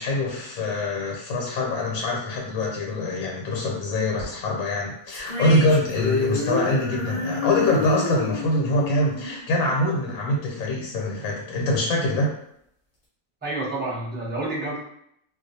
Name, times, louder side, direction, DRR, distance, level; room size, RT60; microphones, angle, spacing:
voice 1, 0.0-12.3, left 2 dB, 85° left, -1 dB, 1.0 m, -24 dB
sound 1, 5.1-10.4, left 2 dB, 35° left, 0.6 m, -29 dB
voice 2, 13.4-14.8, right 2 dB, 10° right, -7 dB, 0.6 m, -29 dB
2.3 x 2.2 x 2.6 m, 0.72 s
omnidirectional pair, 1.4 m